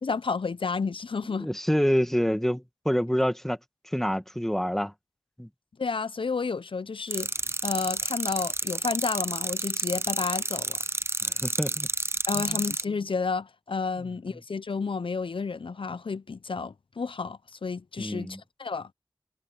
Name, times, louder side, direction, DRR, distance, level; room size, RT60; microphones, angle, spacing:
voice 1, 0.0-1.5 5.8-7.3 7.6-10.8 12.3-18.9, left 4 dB, 80° left, 0.5 m, -31 dB
voice 2, 1.4-3.6 3.8-4.9 5.4-5.5 11.2-11.9 12.3-12.6 18.0-18.4, equal, 5° left, 1.8 m, -27 dB
sound 1, 7.1-12.8, right 2 dB, 30° right, 0.6 m, -30 dB
wide cardioid pair, 50°, 9 cm